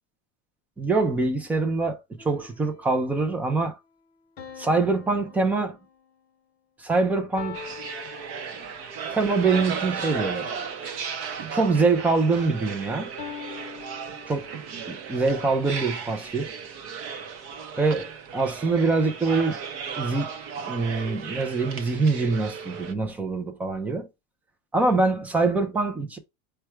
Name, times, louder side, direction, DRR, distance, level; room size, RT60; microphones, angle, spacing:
voice 1, 0.8-3.8 4.6-5.8 6.8-7.7 9.1-10.5 11.5-13.1 14.3-14.5 14.9-16.5 17.8-19.6 20.0-20.3 20.7-24.1 24.7-26.2, right 3 dB, 5° right, 0.3 m, -24 dB
sound 1, 2.2-3.0 4.4-6.2 7.4-9.0 10.1-11.8 13.2-14.8, left 7 dB, 30° left, 1.0 m, -43 dB
sound 2, 7.5-22.9, right 6 dB, 40° right, 0.6 m, -35 dB
4.6 x 2.2 x 4.4 m
supercardioid pair, 160°, 34 cm